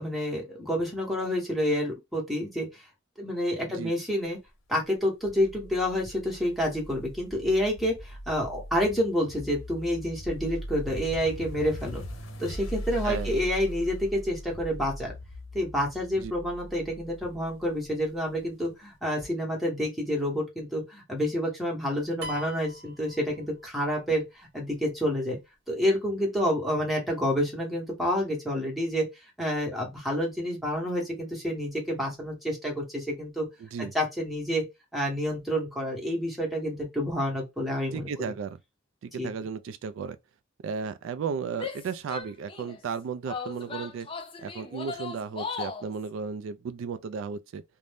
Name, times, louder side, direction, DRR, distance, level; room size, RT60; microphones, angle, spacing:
voice 1, 0.0-2.8 3.2-4.4 4.7-12.0 12.4-15.1 15.5-25.4 25.7-29.1 29.4-33.5 33.8-34.6 34.9-38.1 39.2-39.3, equal, ahead, 1.0 m, -28 dB
sound 1, 5.2-18.4, equal, 80° left, 0.7 m, -40 dB
sound 2, 22.2-23.9, right 1 dB, 60° right, 0.8 m, -41 dB
voice 2, 33.6-33.9 37.9-38.6 39.0-40.2 40.6-44.1 44.4-47.6, right 6 dB, 75° right, 0.3 m, -34 dB
Female speech woman speaking / Yell, 41.5-42.8 43.3-45.9, left 4 dB, 25° left, 0.4 m, -37 dB
2.6 x 2.1 x 3.2 m
head